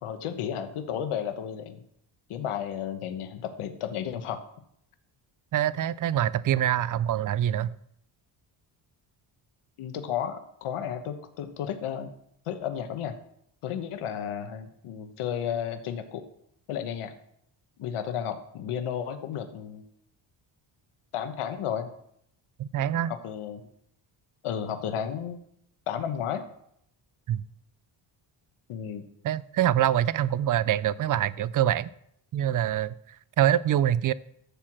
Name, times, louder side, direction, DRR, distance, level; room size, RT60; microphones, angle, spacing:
voice 1, 0.0-1.8 2.3-4.4 9.8-12.1 12.5-13.2 13.6-16.2 16.7-17.1 17.8-19.8 21.1-21.9 23.2-23.7 24.4-25.4 25.9-26.4 28.7-29.0, left 9 dB, 90° left, 8 dB, 1.2 m, -33 dB
voice 2, 5.5-7.8 22.6-23.1 27.3-27.4 29.2-31.9 32.3-34.1, right 11 dB, 45° right, 18 dB, 0.4 m, -25 dB
11.5 x 4.7 x 7.4 m, 0.72 s
cardioid pair, 135°, 49 cm